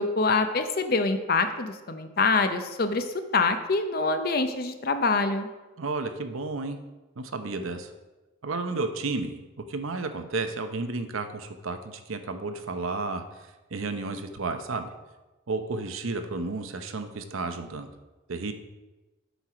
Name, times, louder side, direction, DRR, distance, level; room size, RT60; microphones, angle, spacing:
voice 1, 0.0-3.1 3.3-5.5, left 3 dB, 45° left, 8 dB, 0.6 m, -25 dB
voice 2, 5.8-6.8 7.2-7.9 8.4-14.9 15.5-17.9 18.3-18.5, right 3 dB, 80° right, 8 dB, 0.7 m, -32 dB
8.1 x 4.7 x 5.8 m, 1.1 s
head